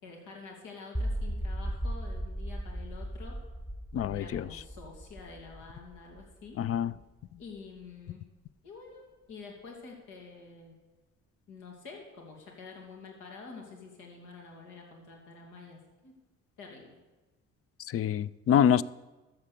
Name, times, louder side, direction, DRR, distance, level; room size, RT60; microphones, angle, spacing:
voice 1, 0.0-3.4 3.9-6.6 7.4-8.2 8.6-10.7 11.5-16.1 16.6-17.0, left 4 dB, 90° left, 2.6 m, -48 dB
sound 1, 0.9-7.0, equal, 5° left, 0.7 m, -37 dB
voice 2, 3.9-4.4 6.6-6.9 17.9-18.8, left 9 dB, 50° left, 0.5 m, -25 dB
13.5 x 7.5 x 6.7 m
cardioid pair, 90°, 30 cm